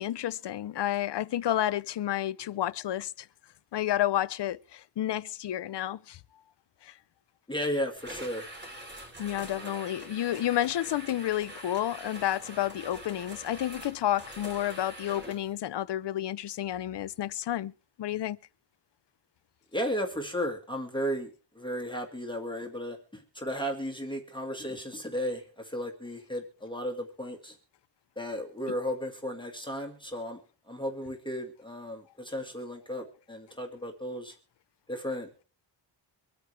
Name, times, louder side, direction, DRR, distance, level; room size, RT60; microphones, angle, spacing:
voice 1, 0.0-3.3 3.7-6.2 6.8-6.9 9.2-17.7 18.0-18.4 28.7-28.8, left 12 dB, 65° left, 0.7 m, -30 dB
voice 2, 7.5-8.5 9.6-9.9 19.7-21.3 21.6-27.6 28.2-30.4 30.7-34.3 34.9-35.4, equal, 10° left, 1.8 m, -34 dB
sound 1, 8.0-15.5, right 1 dB, 25° right, 3.4 m, -44 dB
24.5 x 9.3 x 3.3 m
wide cardioid pair, 180°, 46 cm